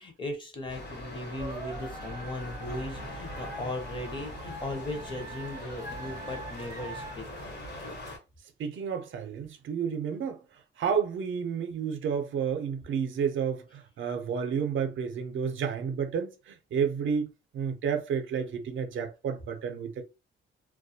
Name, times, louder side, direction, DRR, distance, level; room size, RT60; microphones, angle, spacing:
voice 1, 0.0-7.3, left 1 dB, 25° left, 0.7 m, -37 dB
sound 1, 0.7-8.2, left 1 dB, 55° left, 1.1 m, -41 dB
sound 2, 1.4-7.2, right 2 dB, 15° right, 0.4 m, -44 dB
voice 2, 8.6-10.4 10.8-20.0, right 7 dB, 70° right, 0.6 m, -31 dB
2.2 x 2.1 x 2.7 m
cardioid pair, 130°, 21 cm